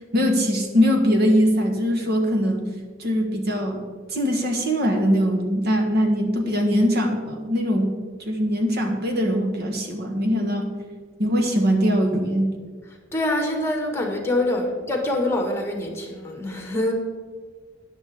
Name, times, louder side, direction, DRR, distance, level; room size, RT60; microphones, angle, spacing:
voice 1, 0.1-2.7 3.0-3.8 4.1-7.9 8.2-10.7 11.2-12.5, equal, 55° right, 4 dB, 1.5 m, -21 dB
voice 2, 13.1-16.9, left 1 dB, 15° left, 2 dB, 1.8 m, -25 dB
13.5 x 10.5 x 3.7 m, 1.5 s
head